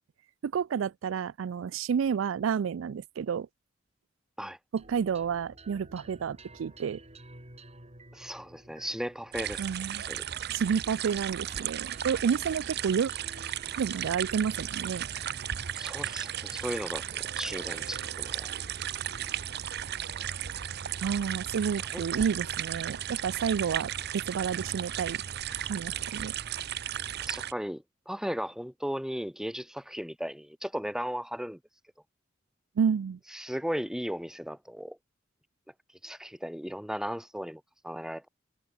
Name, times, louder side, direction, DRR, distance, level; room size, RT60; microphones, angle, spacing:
voice 1, 0.4-3.5 4.7-7.0 9.6-10.0 10.5-13.1 13.8-15.1 21.0-25.2 25.7-26.3 32.8-33.2, right 7 dB, 75° right, 0.4 m, -30 dB
sound 1, 4.8-19.5, right 2 dB, 35° right, 7.3 m, -53 dB
voice 2, 8.1-9.6 10.1-10.2 15.8-17.0 17.4-18.5 21.9-22.0 27.3-31.6 33.3-35.0 36.0-38.3, equal, 5° right, 2.1 m, -36 dB
sound 2, 9.3-27.5, right 10 dB, 55° right, 0.7 m, -35 dB
head